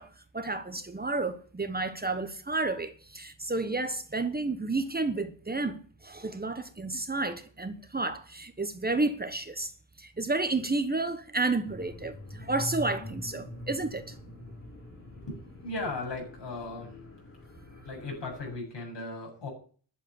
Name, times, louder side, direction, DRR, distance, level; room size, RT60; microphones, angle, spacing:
voice 1, 0.0-9.7 10.0-14.1, right 3 dB, 20° right, 1.1 m, -31 dB
sound 1, 11.6-18.6, left 1 dB, 30° left, 4.9 m, -44 dB
voice 2, 15.2-17.0 17.8-19.5, left 2 dB, 70° left, 7.9 m, -37 dB
11.0 x 7.5 x 9.6 m
wide cardioid pair, 150°, 44 cm